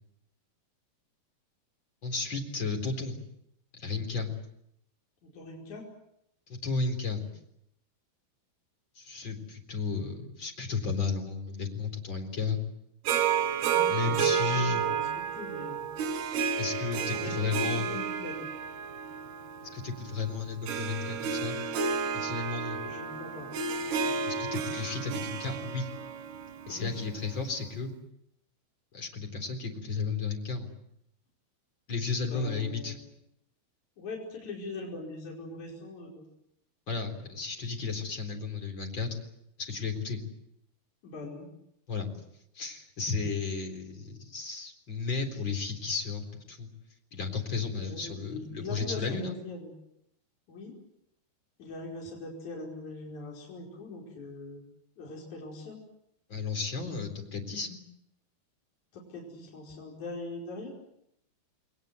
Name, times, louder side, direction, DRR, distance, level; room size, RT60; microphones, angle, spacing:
voice 1, 2.0-3.2 3.7-4.3 6.5-7.2 9.0-12.6 13.9-14.8 16.6-17.9 19.7-21.6 22.1-22.8 24.3-25.9 26.7-27.9 28.9-30.7 31.9-33.0 36.9-39.2 39.6-40.2 41.9-42.1 42.5-46.7 47.1-49.4 56.3-57.8, left 4 dB, 30° left, 4 dB, 4.4 m, -33 dB
voice 2, 5.2-5.8 7.2-7.3 13.6-15.1 15.3-15.8 17.1-17.4 17.6-18.5 22.8-23.5 26.7-27.1 32.3-33.0 34.0-36.2 41.0-41.5 47.7-49.7 50.5-50.7 51.6-54.6 55.0-55.8 58.9-60.7, left 2 dB, 45° left, -2 dB, 6.2 m, -41 dB
Harp, 13.1-27.4, right 6 dB, 90° right, 3.6 m, -31 dB
29.5 x 21.0 x 8.0 m, 0.79 s
omnidirectional pair, 4.5 m